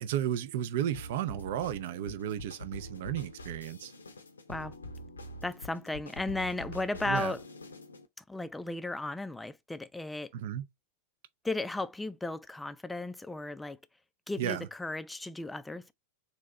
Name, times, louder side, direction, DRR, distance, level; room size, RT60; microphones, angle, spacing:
voice 1, 0.0-3.9 7.1-7.3 10.3-10.7 14.4-14.7, right 10 dB, 55° right, 0.5 m, -33 dB
sound 1, 0.9-8.1, left 1 dB, 75° left, 0.7 m, -45 dB
voice 2, 5.4-7.4 8.3-10.3 11.4-13.8 14.3-15.9, left 2 dB, 5° left, 0.4 m, -35 dB
4.0 x 2.8 x 3.3 m
figure-of-eight pair, 90°, 0 cm